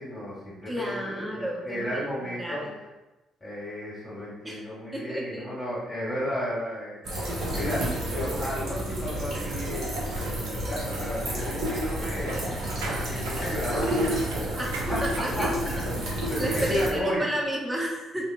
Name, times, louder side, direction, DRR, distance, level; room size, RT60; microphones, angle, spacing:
voice 1, 0.0-2.6 3.4-14.6 14.9-15.1 15.4-17.2, equal, 20° left, -9 dB, 1.5 m, -33 dB
voice 2, 0.7-2.7 4.4-4.6 4.9-5.5 14.6-15.7 16.4-18.3, equal, 15° right, -2 dB, 0.7 m, -32 dB
sound 1, 7.0-16.9, right 1 dB, 55° right, 0.9 m, -30 dB
sound 2, 9.8-16.1 16.5-16.7, right 3 dB, 75° right, 0.4 m, -42 dB
2.8 x 2.6 x 2.5 m, 1.1 s
figure-of-eight pair, 45°, 0 cm